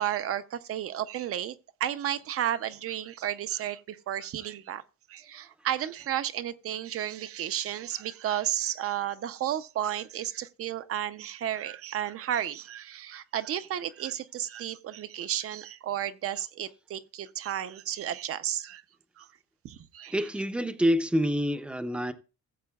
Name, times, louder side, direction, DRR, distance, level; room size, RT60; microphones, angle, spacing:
voice 1, 0.0-1.5 1.8-4.8 5.1-18.8 19.2-19.3 19.6-20.1, right 11 dB, 50° right, 0.6 m, -32 dB
voice 2, 20.1-22.1, equal, 5° right, 0.5 m, -27 dB
16.0 x 7.8 x 2.3 m
cardioid pair, 180°, 29 cm